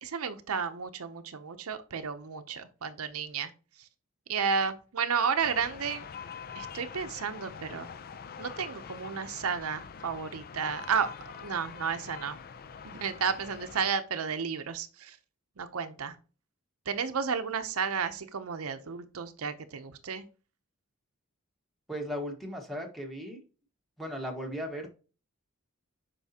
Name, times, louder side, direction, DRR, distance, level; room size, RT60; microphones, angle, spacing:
voice 1, 0.0-3.5 4.3-6.0 6.6-7.9 8.4-11.1 11.4-12.4 12.8-15.2 15.6-16.2 16.9-20.2, right 6 dB, 85° right, 9 dB, 0.7 m, -32 dB
sound 1, 5.4-13.9, left 6 dB, 45° left, 0.5 m, -45 dB
voice 2, 21.9-23.4 24.0-24.9, equal, ahead, 1 dB, 1.4 m, -36 dB
8.2 x 5.5 x 2.8 m, 0.36 s
head